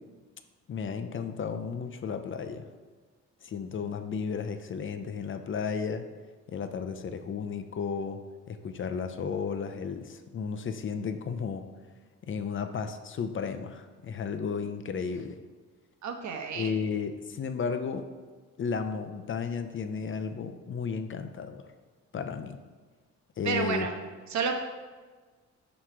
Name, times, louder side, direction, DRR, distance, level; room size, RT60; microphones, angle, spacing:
voice 1, 0.7-2.6 3.4-6.0 6.5-8.2 8.5-11.6 12.2-15.4 16.5-18.1 18.6-21.6 22.1-22.6 23.4-23.9, left 6 dB, 40° left, 8 dB, 0.6 m, -33 dB
voice 2, 16.0-16.7 23.4-23.9 24.3-24.6, right 5 dB, 65° right, 5 dB, 1.0 m, -30 dB
7.7 x 3.2 x 6.0 m, 1.4 s
cardioid pair, 90°, 30 cm